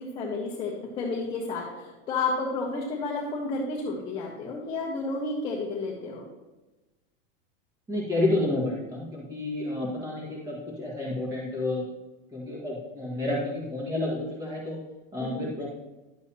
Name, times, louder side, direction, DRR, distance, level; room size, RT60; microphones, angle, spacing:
voice 1, 0.0-6.2 15.2-15.5, left 3 dB, 20° left, -3 dB, 1.1 m, -31 dB
voice 2, 7.9-11.8 12.3-14.8 15.1-15.7, left 2 dB, 10° right, -3 dB, 1.8 m, -30 dB
11.5 x 7.9 x 2.9 m, 1.1 s
supercardioid pair, 175°, 29 cm